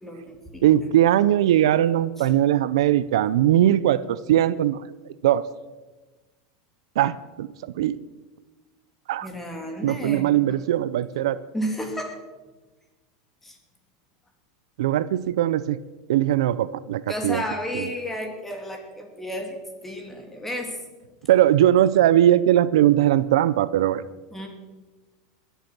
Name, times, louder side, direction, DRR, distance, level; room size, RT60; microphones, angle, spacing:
voice 1, 0.0-0.7 2.2-2.3 9.2-10.6 11.5-12.2 13.4-13.6 17.1-20.8 24.3-24.5, equal, 10° left, 2 dB, 2.8 m, -32 dB
voice 2, 0.6-4.8 5.2-5.5 7.0-8.0 9.1-9.3 9.8-11.4 14.8-15.8 16.1-17.4 17.7-17.8 21.3-24.0, right 12 dB, 85° right, 17 dB, 0.5 m, -20 dB
21.5 x 8.0 x 6.0 m, 1.2 s
supercardioid pair, 135°, 3 cm